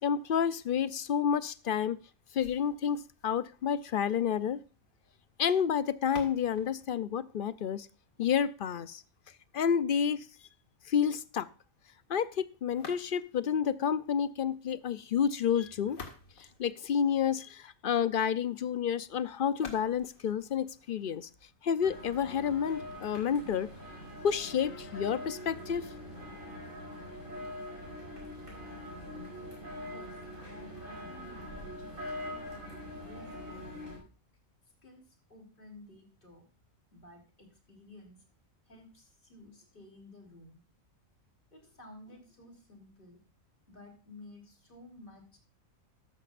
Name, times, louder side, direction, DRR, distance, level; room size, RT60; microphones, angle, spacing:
voice 1, 0.0-2.0 2.3-4.6 5.4-7.9 8.2-9.0 9.5-10.3 10.9-11.5 12.1-16.0 16.4-21.3 21.6-23.7 24.2-25.9, left 8 dB, 55° left, 15 dB, 0.6 m, -30 dB
sound 1, 2.3-8.3 12.7-13.5 15.6-17.5 19.5-21.5, left 3 dB, 80° left, 2.4 m, -52 dB
sound 2, 21.8-34.0, left 1 dB, 80° right, 5.8 m, -43 dB
voice 2, 29.8-32.0 32.3-34.0 34.8-36.4 36.9-38.2 38.6-40.6 41.5-43.2 43.7-45.4, left 1 dB, 40° left, 3 dB, 3.5 m, -54 dB
14.0 x 12.0 x 2.5 m, 0.35 s
omnidirectional pair, 1.4 m